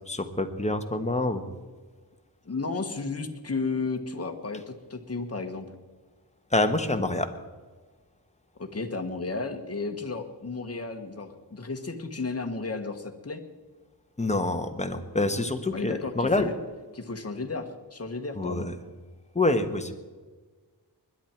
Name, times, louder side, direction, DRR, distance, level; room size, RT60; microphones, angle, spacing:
voice 1, 0.1-1.4 6.5-7.3 14.2-16.5 18.3-18.7 19.3-19.9, left 2 dB, 15° left, 7 dB, 1.2 m, -26 dB
voice 2, 2.4-5.7 8.6-13.4 15.7-16.5 16.9-18.7, left 3 dB, 35° left, 5 dB, 1.5 m, -33 dB
21.0 x 11.0 x 4.5 m, 1.4 s
wide cardioid pair, 100°, 41 cm